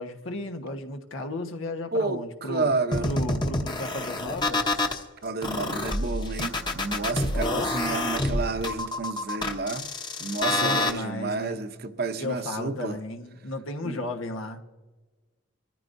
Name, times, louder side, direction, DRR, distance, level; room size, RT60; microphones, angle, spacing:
voice 1, 0.0-2.7 3.0-4.9 7.3-7.7 10.5-11.6 12.2-14.6, left 1 dB, 90° left, 1.3 m, -34 dB
voice 2, 1.9-3.1 5.2-9.9 10.2-13.0 13.8-14.0, right 3 dB, 50° right, 0.8 m, -30 dB
sound 1, 2.9-5.0 5.4-10.9, left 2 dB, 20° left, 0.9 m, -27 dB
25.5 x 14.0 x 2.7 m
head